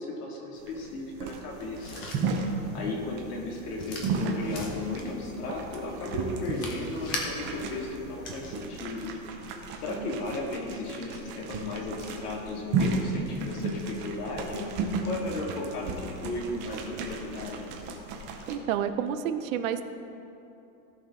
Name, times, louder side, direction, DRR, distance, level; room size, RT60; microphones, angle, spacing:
voice 1, 0.0-2.0 2.7-9.1 9.8-14.6 15.0-17.7, left 2 dB, 90° left, -1 dB, 2.4 m, -35 dB
sound 1, 0.6-18.5, right 4 dB, 25° right, 0.7 m, -34 dB
sound 2, 1.5-8.6, left 2 dB, 20° left, 0.3 m, -41 dB
voice 2, 18.5-19.8, right 9 dB, 65° right, 10 dB, 0.7 m, -30 dB
16.0 x 5.8 x 3.7 m, 2.9 s
supercardioid pair, 170°, 44 cm